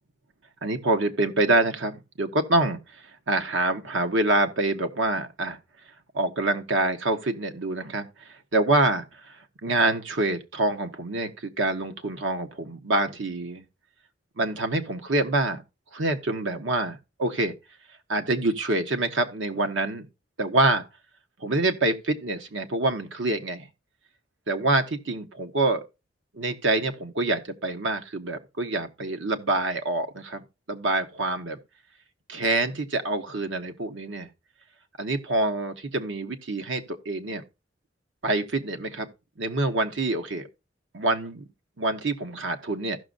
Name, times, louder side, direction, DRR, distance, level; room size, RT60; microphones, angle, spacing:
voice 1, 0.6-3.0 3.3-5.6 6.1-13.6 14.4-15.6 15.9-17.5 18.1-20.1 20.4-20.8 21.4-23.7 24.5-25.8 26.3-31.6 32.3-34.3 35.0-37.4 38.2-39.1 39.4-40.5 40.9-41.5 41.8-43.0, right 2 dB, 75° right, 1.1 m, -26 dB
15.5 x 6.3 x 2.5 m
head